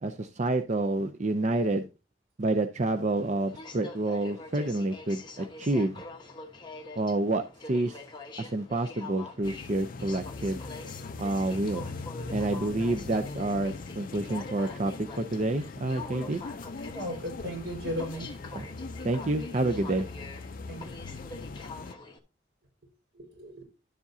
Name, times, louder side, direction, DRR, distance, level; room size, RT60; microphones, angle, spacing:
voice 1, 0.0-1.9 2.4-6.0 7.0-8.0 8.4-10.6 11.2-11.9 12.3-16.4 18.5-18.7 19.0-20.1, right 2 dB, 40° right, 0.5 m, -28 dB
Aircraft, 2.8-22.2, left 2 dB, 25° left, 1.2 m, -45 dB
sound 1, 9.4-21.9, left 3 dB, 45° left, 0.5 m, -41 dB
voice 2, 16.9-18.3 20.7-21.0 23.1-23.6, equal, 75° right, 4.6 m, -36 dB
11.5 x 7.2 x 2.7 m
head